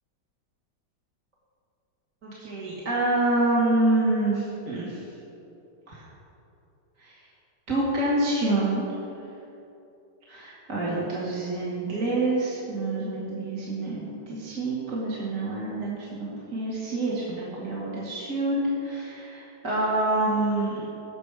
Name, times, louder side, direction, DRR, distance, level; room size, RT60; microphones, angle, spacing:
voice 1, 2.2-5.0 5.9-6.0 7.0-7.1 7.7-8.9 10.3-20.9, right 2 dB, 40° right, -7 dB, 2.0 m, -27 dB
17.0 x 6.5 x 4.8 m, 2.9 s
omnidirectional pair, 2.3 m